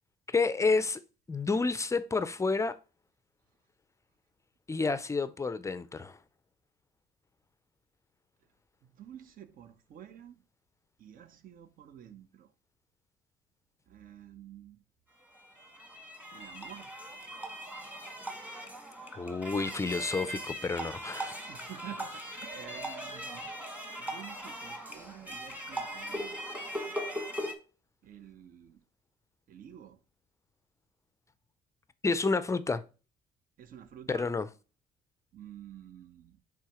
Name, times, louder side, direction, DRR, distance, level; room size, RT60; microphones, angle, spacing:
voice 1, 0.3-1.0 1.3-2.8 4.7-6.2 19.2-21.4 32.0-32.8 34.1-34.5, left 4 dB, 15° left, 0.4 m, -30 dB
voice 2, 8.8-10.4 11.0-12.5 13.9-14.8 16.3-16.9 21.5-23.4 24.0-26.7 28.0-28.8 29.5-30.0 33.6-34.3 35.3-36.4, right 10 dB, 55° right, 0.8 m, -50 dB
sound 1, 15.2-27.5, right 1 dB, 10° right, 1.4 m, -40 dB
9.6 x 3.6 x 3.0 m
cardioid pair, 110°, 17 cm